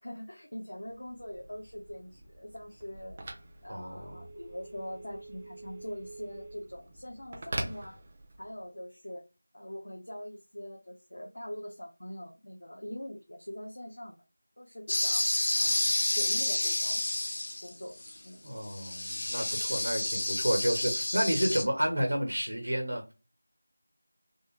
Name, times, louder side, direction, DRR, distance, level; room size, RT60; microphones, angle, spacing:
voice 1, 0.0-3.2 3.6-8.0 8.4-9.2 9.5-14.2 14.6-15.3 15.5-17.1 17.6-18.0 18.2-18.4, equal, 90° left, 0 dB, 0.8 m, -43 dB
Telephone, 0.8-8.6, right 2 dB, 25° right, 0.5 m, -44 dB
voice 2, 3.7-4.2 18.4-23.1, right 1 dB, 80° right, 3 dB, 1.1 m, -30 dB
sound 1, 14.9-17.7 18.0-18.2 18.6-21.6, left 2 dB, 45° left, 0.5 m, -30 dB
3.4 x 2.0 x 2.8 m, 0.29 s
figure-of-eight pair, 175°, 0 cm